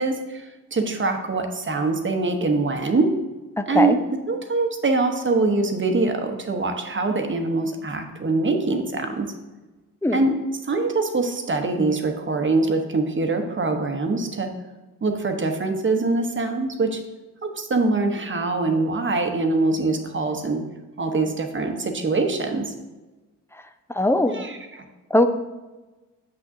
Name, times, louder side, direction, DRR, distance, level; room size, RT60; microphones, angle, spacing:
voice 1, 0.0-3.1 3.7-4.0 4.3-9.3 10.1-10.3 10.6-14.5 15.0-17.0 17.4-20.6 21.0-22.6 24.3-24.8, right 3 dB, 35° right, 5 dB, 1.0 m, -23 dB
voice 2, 3.6-4.0 10.0-10.2 23.9-24.5 25.1-25.3, left 1 dB, 5° left, 8 dB, 0.5 m, -20 dB
7.5 x 6.0 x 2.7 m, 1.1 s
supercardioid pair, 55°, 36 cm